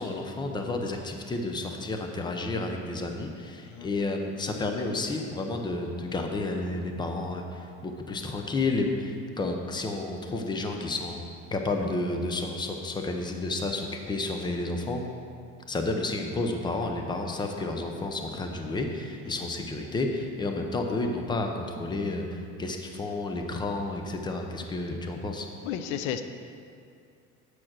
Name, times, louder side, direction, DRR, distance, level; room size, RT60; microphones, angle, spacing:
voice 1, 0.0-11.2 11.5-15.0 15.7-25.5, left 2 dB, 15° left, 3 dB, 0.8 m, -31 dB
voice 2, 25.6-26.2, left 9 dB, 85° left, 9 dB, 0.6 m, -32 dB
8.9 x 6.3 x 6.1 m, 2.3 s
cardioid pair, 145°, 29 cm